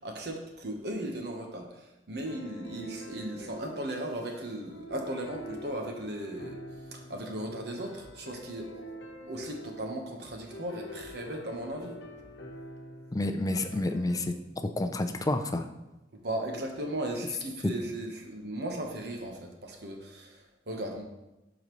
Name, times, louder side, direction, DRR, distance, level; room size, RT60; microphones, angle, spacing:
voice 1, 0.0-8.9 9.3-12.0 16.1-21.0, right 1 dB, 65° right, 2 dB, 1.2 m, -37 dB
sound 1, 2.3-14.3, equal, 85° left, 0.9 m, -46 dB
voice 2, 13.1-14.3 14.8-15.7, left 2 dB, 20° left, 7 dB, 0.4 m, -29 dB
12.0 x 4.0 x 3.1 m, 1.0 s
head